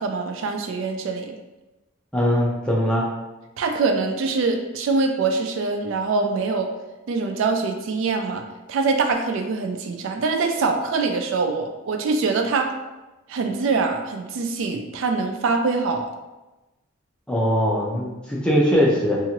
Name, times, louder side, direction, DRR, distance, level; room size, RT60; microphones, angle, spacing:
voice 1, 0.0-1.3 3.6-6.7 7.1-8.4 8.7-12.7 13.3-16.1, right 4 dB, 65° right, 4 dB, 0.3 m, -24 dB
voice 2, 2.1-3.1 17.3-19.2, equal, 5° left, -5 dB, 0.5 m, -21 dB
2.9 x 2.4 x 2.8 m, 1.1 s
head